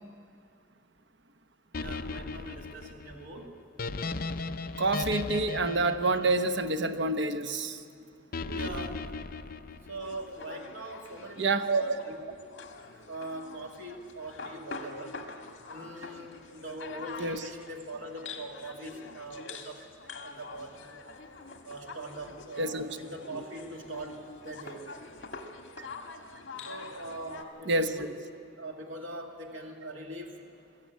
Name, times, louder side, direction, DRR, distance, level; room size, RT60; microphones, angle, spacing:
sound 1, 1.7-7.0 8.3-10.3, left 3 dB, 45° left, 0.6 m, -37 dB
voice 1, 1.8-3.6 7.9-8.1 8.4-9.1 9.9-12.2 13.1-15.1 15.7-19.8 20.2-21.0 21.6-24.8 26.6-28.2 28.6-30.5, right 1 dB, 80° right, 1 dB, 2.3 m, -42 dB
voice 2, 4.8-7.8 11.4-11.8 17.2-17.4 22.6-22.9 27.7-27.9, right 2 dB, 60° right, 9 dB, 0.9 m, -27 dB
sound 2, 10.0-27.4, left 4 dB, 65° left, 1.8 m, -45 dB
21.5 x 13.5 x 9.4 m, 2.3 s
head